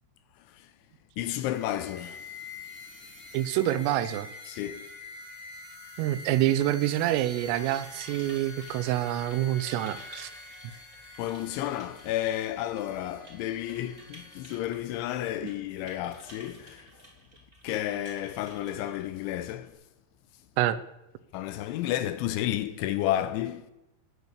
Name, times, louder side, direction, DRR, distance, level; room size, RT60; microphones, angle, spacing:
voice 1, 0.3-0.7 1.2-3.1 4.5-4.9 10.7-10.8 11.2-16.9 17.6-19.8 21.3-23.7, left 13 dB, 80° left, 2.9 m, -32 dB
sound 1, 1.5-14.6, left 3 dB, 30° left, 0.7 m, -46 dB
voice 2, 3.3-4.3 6.0-10.3 15.4-15.5 20.6-20.8, right 13 dB, 85° right, 3.4 m, -27 dB
sound 2, 7.0-19.7, right 1 dB, 10° right, 3.5 m, -53 dB
19.0 x 7.0 x 8.2 m
omnidirectional pair, 5.8 m